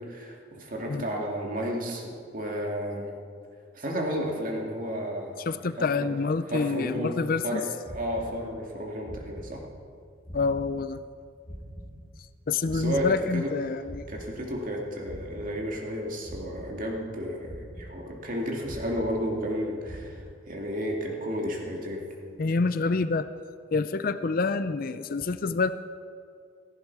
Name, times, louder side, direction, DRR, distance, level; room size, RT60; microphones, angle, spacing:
voice 1, 0.0-3.1 3.7-5.4 5.8-6.1 6.5-7.1 7.4-9.6 12.7-13.5 14.1-22.0, equal, 45° right, 0 dB, 2.5 m, -32 dB
voice 2, 5.5-7.6 10.3-11.0 12.5-14.1 22.4-23.3 23.7-25.7, left 4 dB, 45° left, 12 dB, 0.5 m, -27 dB
sound 1, 7.8-8.8 9.0-10.0 10.2-12.4 12.6-14.8 15.0-16.0 16.2-17.2 17.4-18.4 18.6-19.6 19.8-20.1, equal, 25° left, 4.7 m, -44 dB
17.0 x 15.0 x 4.8 m, 2.3 s
head